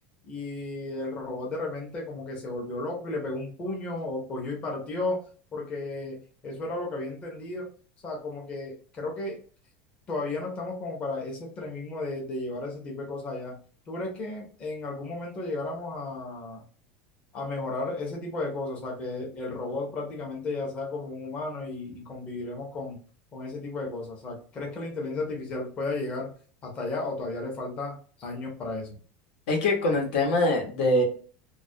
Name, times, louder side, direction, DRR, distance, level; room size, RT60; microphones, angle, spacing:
voice 1, 0.2-5.2 5.5-6.2 6.4-7.7 8.0-9.4 10.1-13.6 13.9-16.6 17.3-23.0 23.3-26.3 26.6-29.0, left 2 dB, 20° left, -1 dB, 0.6 m, -34 dB
voice 2, 29.5-31.0, left 1 dB, 90° left, 1 dB, 0.9 m, -23 dB
2.3 x 2.1 x 2.6 m, 0.41 s
cardioid pair, 180°, 5 cm